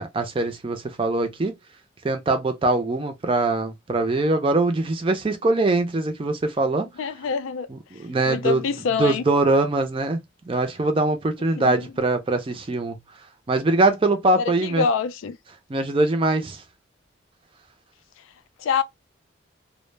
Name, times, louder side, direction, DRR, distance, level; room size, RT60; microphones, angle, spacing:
voice 1, 0.0-1.5 2.0-6.9 7.7-8.6 9.0-10.2 10.5-13.0 13.5-14.8 15.7-16.6, right 2 dB, 25° right, 0.4 m, -22 dB
voice 2, 7.0-7.7 8.3-9.2 11.6-11.9 14.4-15.4 18.6-18.8, left 6 dB, 85° left, 0.4 m, -25 dB
2.0 x 2.0 x 3.1 m
head